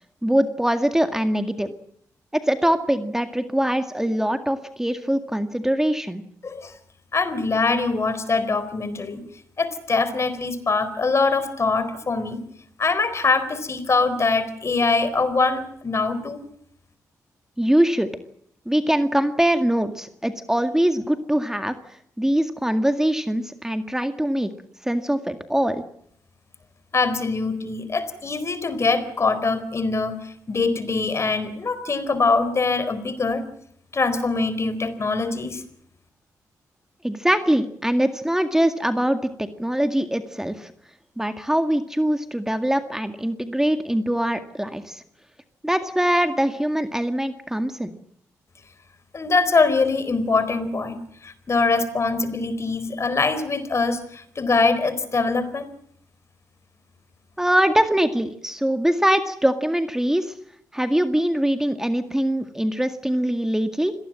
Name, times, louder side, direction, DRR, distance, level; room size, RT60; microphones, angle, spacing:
voice 1, 0.2-1.7 2.3-6.2 17.6-18.1 18.7-21.7 22.2-24.5 24.8-25.8 37.0-40.7 41.2-45.0 45.6-47.9 57.4-60.3 60.7-63.9, right 1 dB, 5° right, 8 dB, 2.0 m, -22 dB
voice 2, 6.4-6.7 7.1-9.2 9.6-12.4 12.8-16.4 26.9-33.4 33.9-35.6 49.1-55.7, left 4 dB, 45° left, 13 dB, 4.2 m, -23 dB
26.0 x 18.5 x 7.6 m, 0.69 s
cardioid pair, 60°, 7 cm